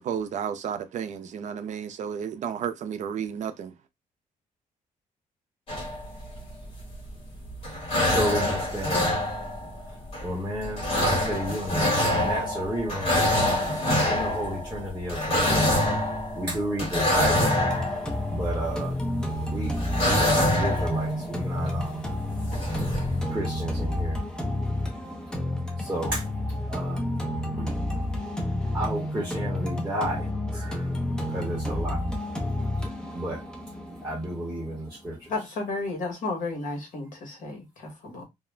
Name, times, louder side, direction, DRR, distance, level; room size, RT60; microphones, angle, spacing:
voice 1, 0.0-3.7, right 8 dB, 55° right, 0.4 m, -32 dB
sound 1, 5.7-7.1 7.5-19.2 19.6-21.8 22.2-22.3 22.4-23.2, left 1 dB, 40° left, 1.3 m, -26 dB
voice 2, 8.1-9.2 10.2-13.5 14.0-15.7 16.3-17.5 18.3-18.9 19.5-19.7 20.1-22.0 23.3-24.2 25.8-26.2 26.7-27.0 27.5-27.7 28.7-30.8 31.3-32.0 33.1-33.4 34.0-35.3, right 1 dB, 15° right, 0.9 m, -32 dB
sound 2, 17.4-35.3, left 1 dB, 5° left, 0.5 m, -30 dB
voice 3, 35.3-38.2, left 3 dB, 65° left, 1.0 m, -33 dB
2.3 x 2.0 x 3.1 m
wide cardioid pair, 170°, 14 cm